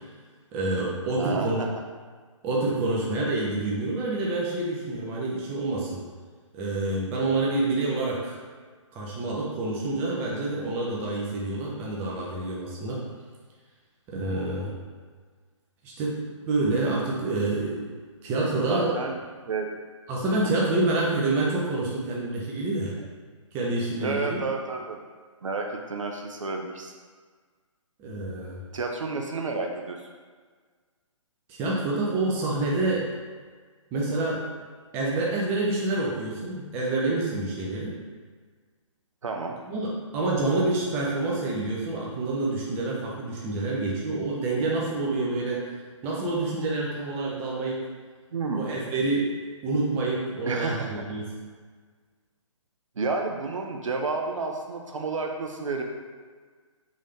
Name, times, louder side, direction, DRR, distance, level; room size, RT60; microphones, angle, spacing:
voice 1, 0.5-1.6 2.4-6.0 6.5-8.4 8.9-13.0 14.1-14.7 15.8-17.9 18.2-19.0 20.1-23.0 23.5-24.4 28.0-28.6 31.5-33.1 33.9-34.5 34.9-38.0 39.7-45.7 46.0-47.8 48.5-51.3, right 2 dB, 10° right, -4 dB, 0.4 m, -27 dB
voice 2, 1.2-1.7 14.1-14.4 18.7-19.2 19.5-19.7 23.0-23.1 24.0-25.0 25.4-26.9 28.7-30.0 39.2-39.6 48.3-48.7 50.5-51.0 53.0-55.8, right 3 dB, 70° right, 2 dB, 0.6 m, -30 dB
3.7 x 2.6 x 3.4 m, 1.5 s
figure-of-eight pair, 140°, 17 cm